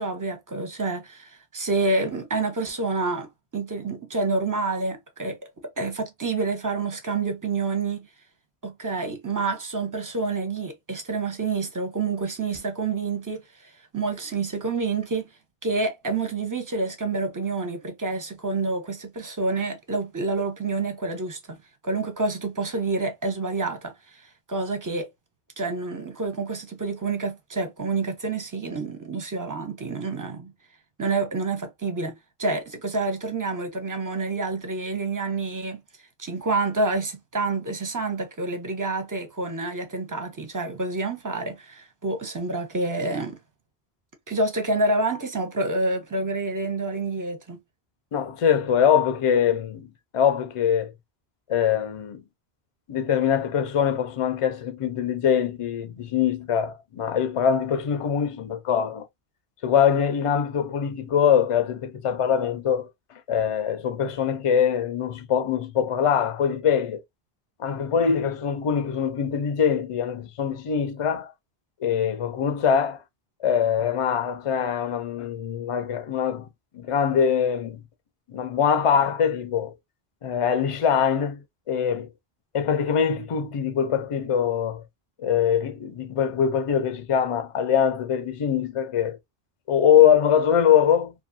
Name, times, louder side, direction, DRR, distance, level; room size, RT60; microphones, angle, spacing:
voice 1, 0.0-8.1 8.6-15.2 15.6-21.6 21.8-25.1 25.6-30.5 31.0-35.8 36.2-43.4 44.3-47.6, right 3 dB, 25° right, 0.5 m, -28 dB
voice 2, 48.1-49.9 50.1-50.9 51.5-52.2 52.9-59.1 59.6-62.9 63.3-67.0 67.6-71.3 71.8-73.0 73.4-76.5 76.7-77.8 78.3-79.7 80.2-81.4 81.7-82.1 82.5-84.8 85.2-89.2 89.7-91.1, left 8 dB, 45° left, 0.4 m, -23 dB
2.6 x 2.4 x 2.5 m
omnidirectional pair, 1.1 m